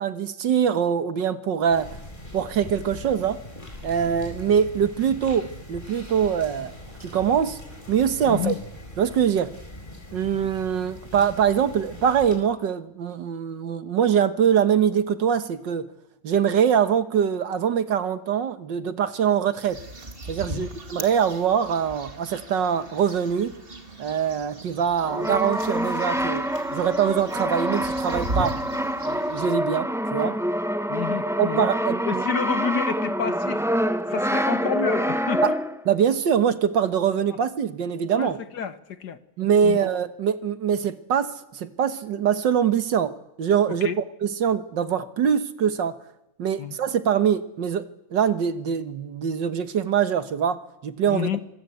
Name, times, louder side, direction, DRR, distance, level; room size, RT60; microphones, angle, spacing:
voice 1, 0.0-1.9 2.3-3.4 3.8-6.7 7.0-7.6 7.9-8.5 9.0-9.6 10.1-15.9 16.2-19.8 20.3-23.6 24.0-28.6 29.0-30.4 31.4-32.3 35.4-35.5 35.9-38.4 39.4-43.9 44.2-46.0 46.4-51.3, right 8 dB, 70° right, 1.9 m, -23 dB
sound 1, 1.7-12.4, left 1 dB, 25° left, 4.9 m, -41 dB
voice 2, 8.3-8.6 20.5-20.7 30.9-31.7 32.1-33.6 34.1-35.6 38.2-39.2 39.6-39.8 43.8-44.0 46.6-46.8 51.1-51.4, left 7 dB, 60° left, 1.8 m, -29 dB
sound 2, 19.5-29.5, right 2 dB, 30° right, 2.3 m, -38 dB
Brass instrument, 25.1-35.9, equal, ahead, 0.6 m, -26 dB
25.0 x 23.5 x 8.3 m
omnidirectional pair, 2.1 m